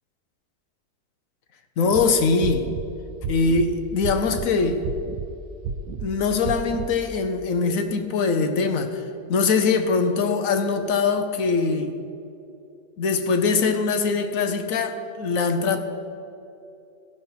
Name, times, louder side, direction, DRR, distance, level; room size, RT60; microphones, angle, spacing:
voice 1, 1.8-2.7 3.3-4.8 6.0-9.0 9.3-11.9 13.0-15.8, left 4 dB, 60° left, 7 dB, 1.1 m, -22 dB
sound 1, 1.8-2.0 2.4-2.9 3.2-3.7 4.0-4.5 4.8-5.3 5.6-6.1 6.5-6.9, right 6 dB, 85° right, 1.2 m, -31 dB
14.5 x 5.7 x 5.7 m, 2.7 s
omnidirectional pair, 1.7 m